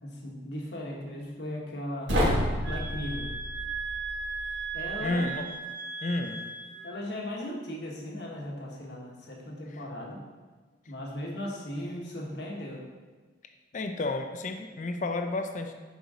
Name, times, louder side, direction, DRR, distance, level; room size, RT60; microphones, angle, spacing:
voice 1, 0.0-2.1 2.6-3.3 4.7-5.3 6.8-10.2 10.9-12.9, left 1 dB, 60° left, -2 dB, 1.5 m, -37 dB
sound 1, 2.1-5.1, equal, 85° right, 1.4 m, -30 dB
sound 2, 2.6-6.9, right 5 dB, 60° right, 0.7 m, -37 dB
voice 2, 5.0-5.5 6.0-6.4 9.7-9.8 13.7-15.7, left 2 dB, 40° left, 5 dB, 0.5 m, -31 dB
6.4 x 4.9 x 5.0 m, 1.4 s
head